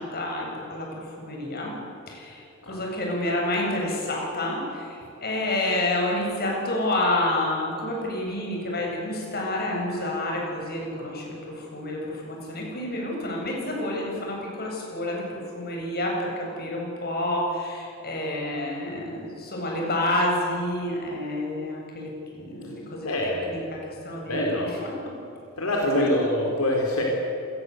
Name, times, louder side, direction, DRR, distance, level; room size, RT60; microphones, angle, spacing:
voice 1, 0.0-1.8 2.1-25.1 25.9-26.1, left 1 dB, 45° left, 0 dB, 7.9 m, -29 dB
voice 2, 23.0-23.6 24.3-24.7 25.6-27.0, left 1 dB, 80° left, -1 dB, 4.6 m, -25 dB
27.5 x 21.5 x 8.2 m, 2.8 s
head